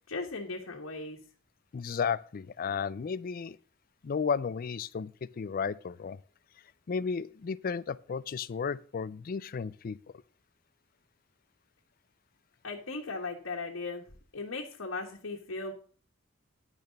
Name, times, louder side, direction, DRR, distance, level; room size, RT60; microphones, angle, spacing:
voice 1, 0.1-1.2 12.6-14.1 14.3-15.7, left 3 dB, 90° left, 1.5 m, -37 dB
voice 2, 1.7-3.6 4.0-6.2 6.9-10.0, left 6 dB, 45° left, 0.4 m, -33 dB
10.5 x 6.5 x 5.2 m
head